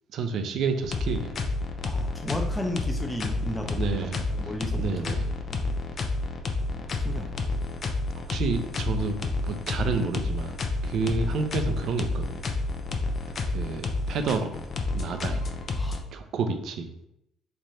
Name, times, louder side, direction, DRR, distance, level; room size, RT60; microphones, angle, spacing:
voice 1, 0.1-1.3 3.7-5.3 7.6-7.8 8.1-9.2 9.4-10.6 10.8-12.5 13.5-14.6 14.9-15.5 16.1-16.9, right 4 dB, 65° right, 7 dB, 0.5 m, -30 dB
sound 1, 0.8-16.0, left 2 dB, 45° left, 0.5 m, -30 dB
voice 2, 1.8-4.1 4.3-4.8 5.5-5.7 6.7-7.3 15.8-16.0, left 1 dB, 10° left, 3 dB, 0.6 m, -34 dB
3.3 x 2.5 x 4.2 m, 0.78 s
supercardioid pair, 80°, 0 cm